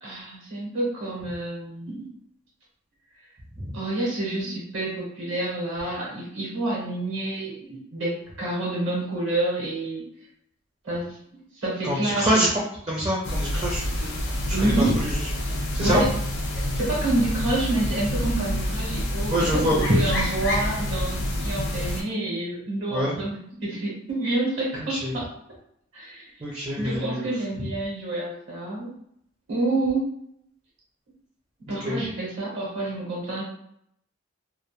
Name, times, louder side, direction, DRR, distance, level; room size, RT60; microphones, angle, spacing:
voice 1, 0.0-2.1 3.7-10.0 10.8-11.2 11.5-12.4 14.5-15.0 15.8-16.1 16.6-25.2 25.9-26.3 26.8-28.9 29.5-30.1 31.7-33.4, right 2 dB, 60° right, -5 dB, 0.9 m, -28 dB
voice 2, 11.8-12.6 12.9-14.1 14.5-15.2 15.7-16.0 19.3-20.3 22.9-23.2 24.8-25.1 26.4-27.3 27.6-27.7 31.7-32.0, equal, 25° right, -5 dB, 0.5 m, -25 dB
sound 1, 13.2-22.0, left 1 dB, 50° left, 0.5 m, -27 dB
2.2 x 2.1 x 2.9 m, 0.72 s
head